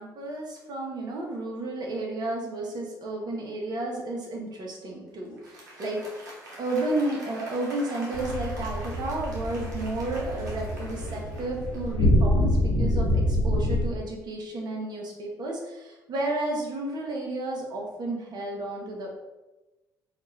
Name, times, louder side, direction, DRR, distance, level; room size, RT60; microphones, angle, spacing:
voice 1, 0.0-6.0 6.6-19.1, right 2 dB, 50° right, -1 dB, 1.0 m, -32 dB
Applause, 5.3-12.2, right 1 dB, 85° right, 0.8 m, -45 dB
sound 1, 8.1-13.8, left 1 dB, 70° left, 1.0 m, -26 dB
4.2 x 2.5 x 3.2 m, 1.1 s
hypercardioid pair, 50°, 9 cm